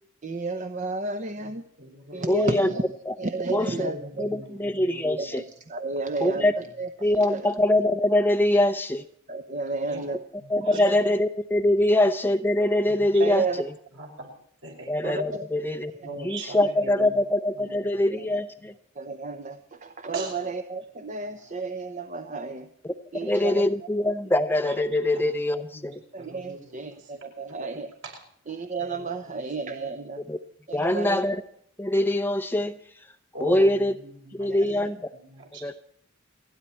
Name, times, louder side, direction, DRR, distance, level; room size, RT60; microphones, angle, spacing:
voice 1, 0.2-1.6 2.1-2.8 3.2-4.2 5.2-6.9 7.3-7.4 9.3-10.2 10.7-11.0 13.2-13.6 15.0-15.5 16.0-16.1 18.2-18.3 19.0-22.7 23.1-23.7 26.1-27.9 28.5-30.2 30.7-31.2 34.5-34.9, right 3 dB, 35° right, 8 dB, 0.8 m, -32 dB
voice 2, 1.4-2.6 3.7-5.3 9.9-10.0 10.4-10.8 12.9-13.3 13.9-14.3 14.6-14.9 16.0-17.2 17.6-18.3 20.1-20.4 21.3-21.5 24.6-24.8 25.1-25.2 25.6-27.1 28.9-29.4 29.9-30.0 33.3-34.8 35.1-35.6, right 1 dB, 60° right, 0 dB, 5.7 m, -41 dB
voice 3, 2.3-2.7 3.1-3.2 3.5-3.9 4.2-5.4 6.2-6.5 7.0-9.0 10.5-13.7 14.9-15.9 16.2-18.7 22.8-26.0 30.3-30.4 30.7-31.4 31.8-32.8 33.4-33.9 34.3-35.1 35.6-35.7, left 1 dB, 10° left, 9 dB, 0.6 m, -23 dB
29.5 x 9.8 x 4.4 m, 0.70 s
head